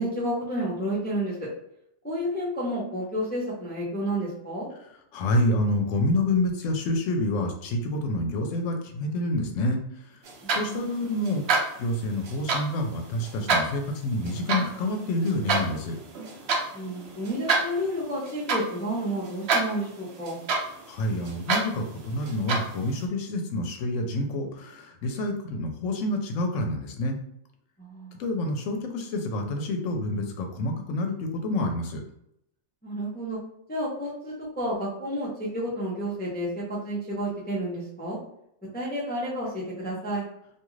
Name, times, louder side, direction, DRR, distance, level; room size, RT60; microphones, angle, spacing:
voice 1, 0.0-1.5 2.0-4.7 10.4-10.9 16.7-20.4 27.8-28.2 32.8-33.4 33.7-38.2 38.7-40.2, equal, 15° left, -6 dB, 0.4 m, -31 dB
voice 2, 5.1-9.8 10.6-16.0 20.9-27.2 28.2-32.0, left 1 dB, 70° left, 3 dB, 0.9 m, -28 dB
sound 1, 10.2-23.0, right 4 dB, 60° right, 0.8 m, -30 dB
2.6 x 2.4 x 3.0 m, 0.75 s
omnidirectional pair, 1.4 m